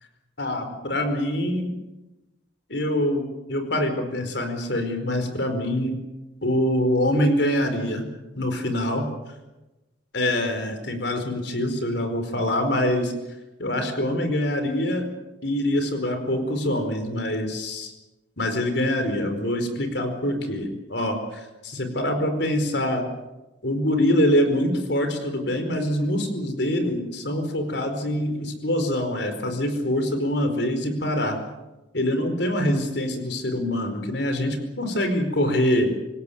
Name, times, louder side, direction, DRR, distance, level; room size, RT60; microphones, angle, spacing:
voice 1, 0.4-1.7 2.7-5.9 6.4-8.0 8.3-9.0 10.1-13.1 13.6-15.1 15.4-17.9 18.4-23.0 23.6-31.4 31.9-35.9, left 1 dB, 60° left, 7 dB, 4.7 m, -24 dB
27.0 x 16.5 x 9.3 m, 1.1 s
head